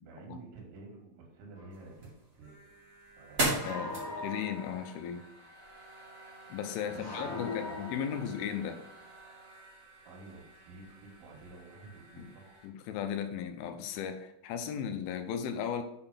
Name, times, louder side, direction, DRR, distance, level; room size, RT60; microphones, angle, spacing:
voice 1, 0.0-2.8 3.2-4.3 6.8-7.8 10.0-12.6, right 3 dB, 80° right, -1 dB, 4.6 m, -51 dB
sound 1, 1.5-1.7 3.5-5.1 6.9-8.7, left 3 dB, 30° left, 1.3 m, -41 dB
sound 2, 1.7-12.7, right 1 dB, 35° right, 1.2 m, -41 dB
voice 2, 3.6-3.9 4.2-5.2 6.5-8.8 12.2-12.3 12.6-15.8, left 8 dB, 80° left, 7 dB, 3.1 m, -36 dB
8.8 x 4.4 x 5.6 m, 0.81 s
omnidirectional pair, 5.8 m